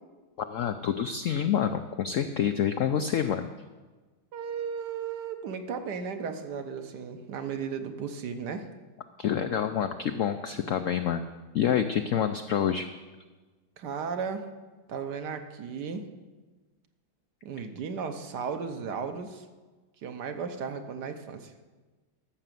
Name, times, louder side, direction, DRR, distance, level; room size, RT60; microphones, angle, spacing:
voice 1, 0.4-3.5 9.2-11.3 11.5-12.9, left 8 dB, 80° left, 8 dB, 0.7 m, -27 dB
voice 2, 4.3-8.7 13.8-14.5 14.9-16.1 17.4-19.5 20.0-21.5, right 6 dB, 65° right, 7 dB, 1.5 m, -35 dB
13.0 x 6.7 x 7.5 m, 1.3 s
omnidirectional pair, 2.0 m